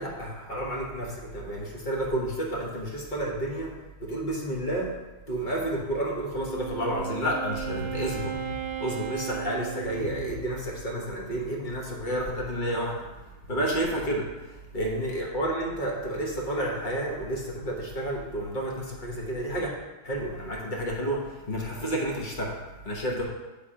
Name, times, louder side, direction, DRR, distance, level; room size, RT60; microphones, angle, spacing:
voice 1, 0.0-3.7 4.0-4.9 5.3-13.0 13.5-19.7 20.0-22.6 22.8-23.2, right 1 dB, 30° left, -2 dB, 1.0 m, -30 dB
Wind instrument woodwind instrument, 6.3-10.6, right 10 dB, 70° right, 1.0 m, -36 dB
9.2 x 3.8 x 4.9 m, 1.1 s
omnidirectional pair, 2.3 m